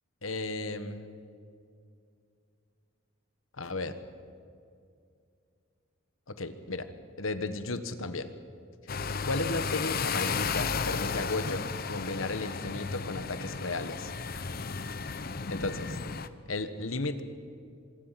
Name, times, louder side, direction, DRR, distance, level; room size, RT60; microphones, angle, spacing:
voice 1, 0.2-1.2 3.6-4.0 6.3-6.9 7.2-8.3 9.2-14.5 15.5-16.0 16.5-17.2, left 2 dB, 75° left, 10 dB, 1.4 m, -34 dB
sound 1, 8.9-16.3, left 5 dB, 45° left, 0.8 m, -34 dB
26.0 x 22.5 x 5.9 m, 2.4 s
head